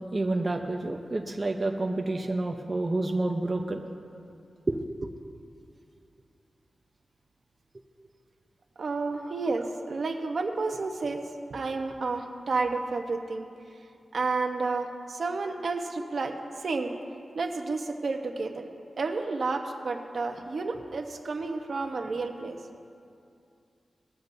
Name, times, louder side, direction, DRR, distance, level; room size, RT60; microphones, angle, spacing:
voice 1, 0.0-3.8 4.7-5.1, right 2 dB, 35° right, 3 dB, 0.7 m, -29 dB
voice 2, 8.8-11.2 11.5-13.5 14.1-16.9 17.3-18.7 19.0-22.6, right 3 dB, 70° right, 4 dB, 1.0 m, -31 dB
20.0 x 14.0 x 2.7 m, 2.5 s
wide cardioid pair, 105°, 0 cm